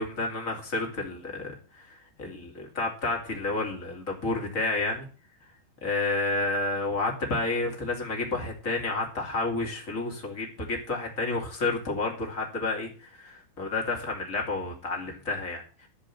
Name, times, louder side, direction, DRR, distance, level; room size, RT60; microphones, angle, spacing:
voice 1, 0.0-1.9 2.2-5.1 5.8-15.6, left 2 dB, 25° left, 1 dB, 2.2 m, -30 dB
13.0 x 5.4 x 8.5 m, 0.37 s
omnidirectional pair, 5.2 m